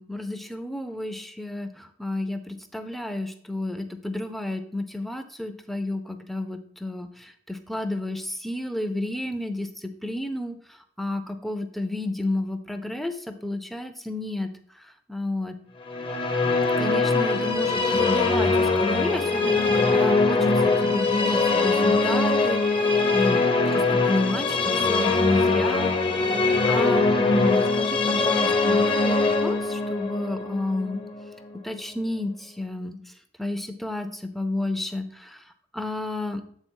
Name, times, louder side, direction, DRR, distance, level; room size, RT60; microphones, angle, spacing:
voice 1, 0.0-9.7 10.0-10.6 11.0-13.1 13.4-14.5 15.1-15.5 16.8-23.4 23.7-25.9 26.7-28.8 29.0-31.1 31.6-33.0 33.4-35.4 35.7-36.4, left 2 dB, ahead, 8 dB, 0.6 m, -31 dB
Musical instrument, 15.9-31.3, left 3 dB, 30° left, 0.8 m, -22 dB
8.0 x 3.8 x 4.5 m, 0.62 s
head